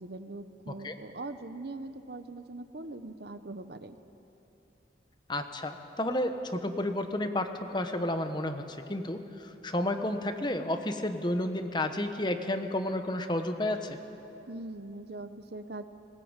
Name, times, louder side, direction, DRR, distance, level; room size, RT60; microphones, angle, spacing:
voice 1, 0.0-4.0 14.5-15.8, right 2 dB, 65° right, 10 dB, 0.9 m, -41 dB
voice 2, 5.3-8.6 8.9-14.0, left 1 dB, 25° left, 7 dB, 1.1 m, -31 dB
20.0 x 18.0 x 9.0 m, 2.9 s
head